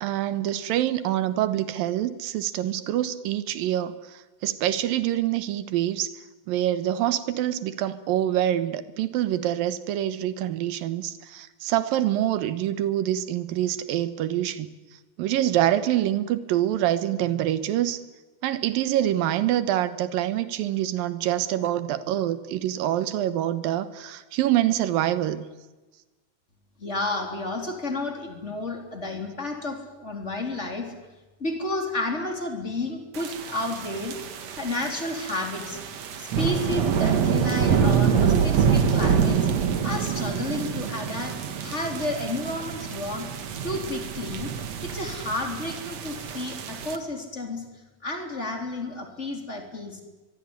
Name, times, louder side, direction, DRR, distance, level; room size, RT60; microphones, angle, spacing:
voice 1, 0.0-6.1 6.5-14.7 15.2-18.0 18.4-25.5, right 12 dB, 75° right, 2.9 m, -25 dB
voice 2, 26.8-30.9 31.4-34.2 34.5-35.8 36.2-39.4 39.8-43.3 43.6-44.5 44.8-47.6 48.0-50.0, left 2 dB, 20° left, 3.5 m, -31 dB
sound 1, 33.1-47.0, right 7 dB, 55° right, 2.6 m, -26 dB
23.5 x 23.0 x 9.8 m
omnidirectional pair, 4.1 m